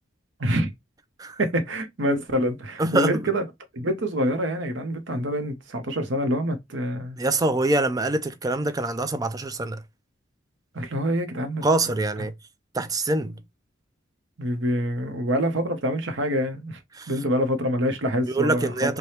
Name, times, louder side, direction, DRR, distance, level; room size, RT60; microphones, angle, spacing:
voice 1, 0.4-0.7 1.4-3.4 3.7-7.2 10.7-11.7 14.4-16.8 17.1-18.9, equal, 70° right, 0.9 m, -26 dB
voice 2, 2.8-3.3 7.2-9.8 11.6-12.3 12.7-13.4 16.9-17.1 18.2-19.0, right 2 dB, 20° right, 0.3 m, -24 dB
3.3 x 2.2 x 4.2 m
head